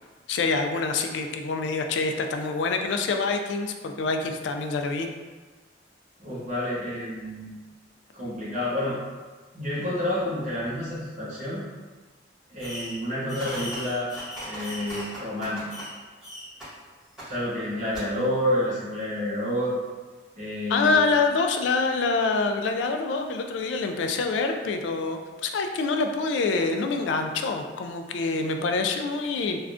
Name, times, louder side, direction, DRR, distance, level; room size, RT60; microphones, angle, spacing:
voice 1, 0.3-5.1 20.7-29.6, left 4 dB, 80° left, 5 dB, 0.3 m, -26 dB
voice 2, 6.2-7.6 8.1-9.0 9.5-11.6 12.5-14.1 14.4-15.7 17.2-19.7 20.4-21.0, left 1 dB, 40° right, -9 dB, 1.0 m, -29 dB
Fireworks, 12.6-13.0 13.3-15.9 16.2-16.6 17.2-17.3 17.9-18.0, equal, 5° right, 1.5 m, -37 dB
3.5 x 2.2 x 2.4 m, 1.3 s
head